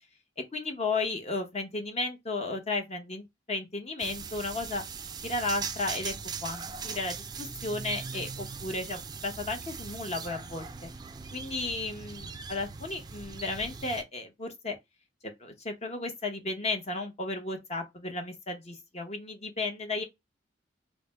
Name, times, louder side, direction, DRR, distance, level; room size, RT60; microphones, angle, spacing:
voice 1, 0.5-4.8 5.2-6.1 6.4-10.9 11.3-14.8 15.2-20.0, left 3 dB, 35° left, 0.8 m, -34 dB
sound 1, 4.0-14.0, right 5 dB, 20° right, 0.4 m, -40 dB
4.1 x 2.1 x 3.3 m
head